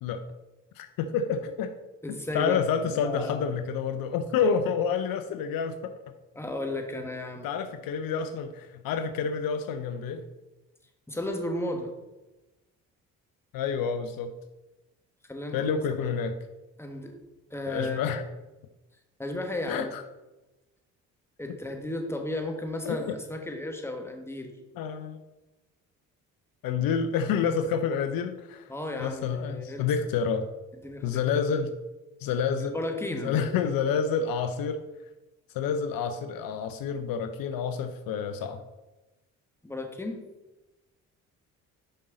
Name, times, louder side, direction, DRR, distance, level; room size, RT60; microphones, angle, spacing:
voice 1, 0.8-1.7 2.3-5.9 7.4-10.2 13.5-14.3 15.5-16.3 17.7-18.2 19.7-20.0 22.9-23.2 24.7-25.2 26.6-28.7 29.0-30.5 31.0-31.7 32.2-32.7 33.2-34.8 35.5-38.6, left 6 dB, 65° left, 9 dB, 0.6 m, -28 dB
voice 2, 2.0-2.6 2.9-3.4 6.3-7.5 11.1-11.9 15.3-16.1 16.8-17.2 17.5-18.0 19.2-19.9 21.4-24.6 28.7-29.9 30.8-31.3 32.6-33.7 39.6-40.2, left 1 dB, 5° left, 3 dB, 1.4 m, -34 dB
6.4 x 5.4 x 3.8 m, 1.1 s
hypercardioid pair, 55°, 39 cm